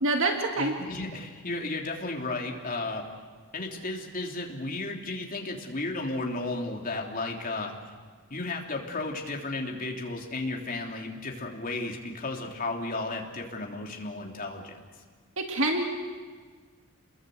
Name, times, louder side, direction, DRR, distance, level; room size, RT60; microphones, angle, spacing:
voice 1, 0.0-0.8 15.4-15.8, right 2 dB, 60° right, 3 dB, 2.2 m, -26 dB
voice 2, 0.5-3.1 3.5-7.7 8.3-14.8, left 2 dB, 40° left, 1 dB, 3.3 m, -34 dB
29.5 x 21.5 x 8.0 m, 1.5 s
head